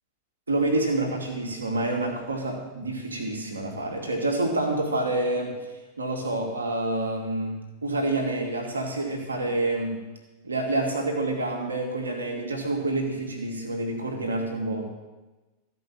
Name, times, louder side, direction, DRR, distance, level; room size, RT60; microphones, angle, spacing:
voice 1, 0.5-5.6 6.0-10.0 10.4-14.9, right 2 dB, 75° right, 1 dB, 2.1 m, -28 dB
14.0 x 5.5 x 7.1 m, 1.2 s
figure-of-eight pair, 90°, 0 cm